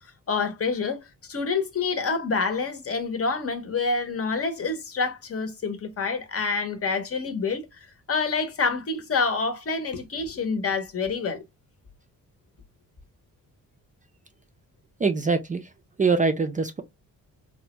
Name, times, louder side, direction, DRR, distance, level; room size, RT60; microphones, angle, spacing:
voice 1, 0.3-7.8 8.1-11.4, left 4 dB, 40° left, 0.8 m, -27 dB
voice 2, 15.0-15.6 16.0-16.8, right 4 dB, 25° right, 0.4 m, -23 dB
3.3 x 2.2 x 2.9 m
cardioid pair, 80°, 35 cm